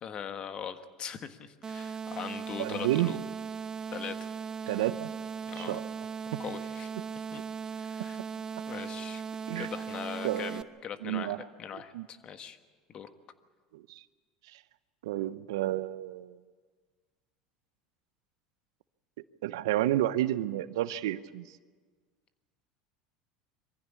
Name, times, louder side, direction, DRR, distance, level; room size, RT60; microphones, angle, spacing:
voice 1, 0.0-3.2 3.9-4.3 5.5-5.8 6.4-7.4 7.8-8.2 8.7-9.2 9.6-12.6 12.9-13.1, left 8 dB, 40° left, 9 dB, 1.5 m, -41 dB
sound 1, 1.6-10.6, right 6 dB, 30° right, 0.7 m, -38 dB
voice 2, 2.6-3.2 4.7-5.1 5.6-5.8 6.3-6.4 7.0-7.1 9.5-9.7 10.2-10.6 11.0-11.4 11.9-12.1 13.7-14.0 14.5-14.6 15.0-16.4 19.4-21.5, right 14 dB, 80° right, 15 dB, 0.7 m, -31 dB
23.0 x 15.0 x 8.4 m, 1.5 s
hypercardioid pair, 95°, 2 cm